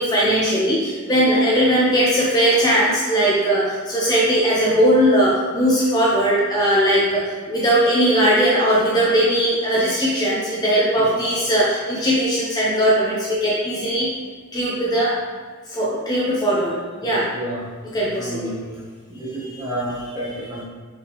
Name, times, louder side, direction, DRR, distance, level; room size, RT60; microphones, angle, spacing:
voice 1, 0.0-14.1 14.5-15.2 15.7-17.3 17.9-18.5 19.3-19.6, equal, 20° left, -6 dB, 0.6 m, -19 dB
voice 2, 17.0-17.6 18.2-18.7 19.1-20.6, right 1 dB, 20° right, -7 dB, 1.2 m, -30 dB
4.9 x 3.5 x 3.0 m, 1.5 s
head